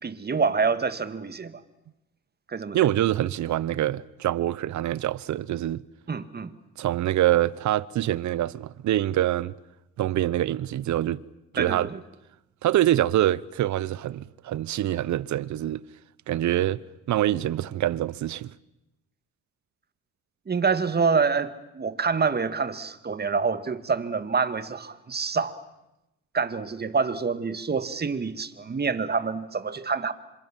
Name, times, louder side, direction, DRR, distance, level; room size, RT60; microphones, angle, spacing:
voice 1, 0.0-1.6 2.5-2.8 6.1-6.5 11.6-12.0 20.5-25.6 26.3-30.1, right 5 dB, 35° right, 2.0 m, -26 dB
voice 2, 2.7-5.8 6.8-9.5 10.0-11.2 11.5-11.9 12.6-15.8 16.3-16.8 17.1-18.5, right 13 dB, 70° right, 0.9 m, -25 dB
28.5 x 26.5 x 7.5 m
cardioid pair, 90°, 30 cm